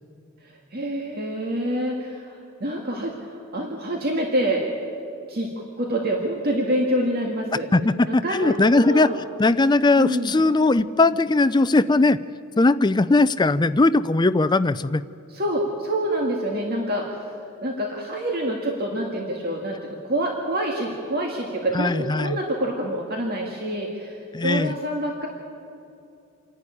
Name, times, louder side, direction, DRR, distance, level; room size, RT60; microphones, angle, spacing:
voice 1, 0.4-4.6 5.3-5.5 5.8-7.7 8.1-9.2 9.9-10.4 15.3-17.3 17.6-25.3, right 1 dB, 45° right, 0 dB, 1.9 m, -27 dB
voice 2, 7.7-9.1 9.4-12.2 12.6-15.0 21.7-22.4 24.3-24.8, left 2 dB, 20° left, 14 dB, 0.4 m, -19 dB
27.5 x 11.0 x 9.9 m, 2.6 s
head